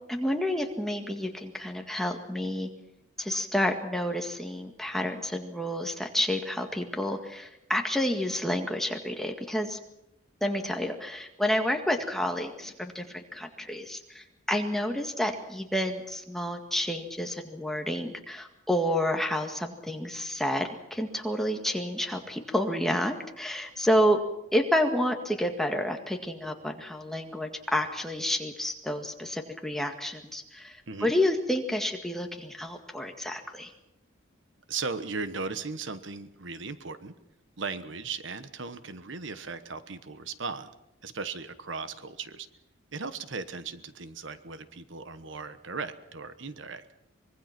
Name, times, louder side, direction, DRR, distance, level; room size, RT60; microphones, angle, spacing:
voice 1, 0.1-2.7 3.2-9.8 10.4-24.2 24.5-33.7, equal, ahead, 3 dB, 1.9 m, -29 dB
voice 2, 34.7-37.1 37.6-40.7 41.0-42.5 42.9-46.8, right 4 dB, 65° right, 11 dB, 1.2 m, -37 dB
24.5 x 22.0 x 6.0 m, 0.86 s
head